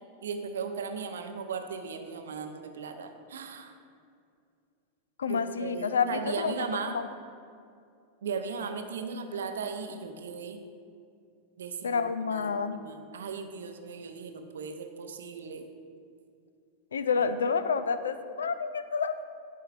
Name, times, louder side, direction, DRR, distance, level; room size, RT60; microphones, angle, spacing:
voice 1, 0.2-3.8 5.3-7.0 8.2-10.6 11.6-12.0 12.3-15.7 17.2-17.3, right 5 dB, 65° right, 7 dB, 0.6 m, -37 dB
voice 2, 5.2-6.7 6.9-7.1 11.8-12.8 16.9-19.2, left 5 dB, 70° left, 12 dB, 0.3 m, -29 dB
12.0 x 5.6 x 2.5 m, 2.4 s
figure-of-eight pair, 90°, 0 cm